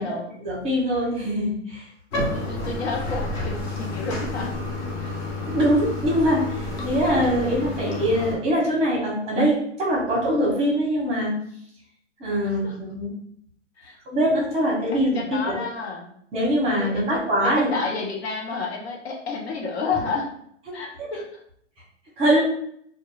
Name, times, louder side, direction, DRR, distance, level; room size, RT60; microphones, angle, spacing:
voice 1, 0.4-1.9 5.5-11.4 12.2-13.1 14.1-15.1 15.4-15.6 16.3-17.7 20.7-21.1 22.2-22.4, equal, 15° right, -4 dB, 0.9 m, -23 dB
Bathtub (filling or washing), 2.1-8.3, left 2 dB, 20° left, 0.5 m, -30 dB
voice 2, 2.3-4.6 5.0-5.1 12.4-12.8 13.8-14.0 15.1-16.1 16.8-20.4 20.7-21.4, left 4 dB, 55° left, 0 dB, 0.7 m, -31 dB
2.8 x 2.3 x 2.3 m, 0.68 s
hypercardioid pair, 130°, 38 cm